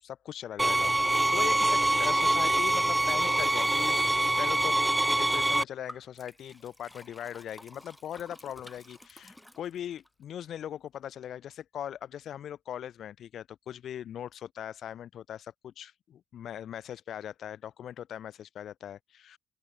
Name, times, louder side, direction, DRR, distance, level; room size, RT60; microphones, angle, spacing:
voice 1, 0.0-4.0 4.4-4.8 5.1-19.4, left 10 dB, 70° left, 8.0 m, -40 dB
sound 1, 0.6-5.6, right 2 dB, 10° right, 0.4 m, -25 dB
Liquid, 5.9-10.1, left 1 dB, 5° left, 4.8 m, -51 dB
open air
cardioid pair, 90°, 0 cm